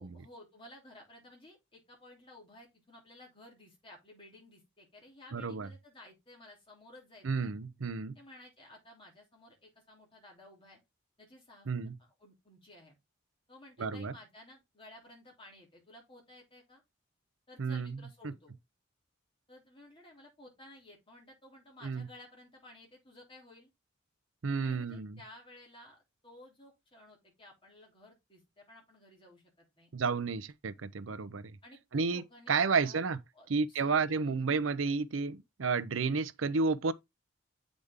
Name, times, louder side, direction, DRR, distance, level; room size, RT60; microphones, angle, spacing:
voice 1, 0.0-7.4 8.1-10.8 11.2-11.7 12.0-13.0 13.5-16.8 17.5-18.5 19.5-23.7 24.6-29.9 31.6-33.0 33.3-34.8, left 1 dB, 25° left, 3.1 m, -55 dB
voice 2, 5.3-5.7 7.2-8.2 11.7-12.0 13.8-14.1 17.6-18.0 18.2-18.3 21.8-22.1 24.4-25.2 29.9-31.4 31.9-32.2 32.5-33.2 33.5-36.9, right 4 dB, 80° right, 0.6 m, -31 dB
8.0 x 5.1 x 3.6 m
head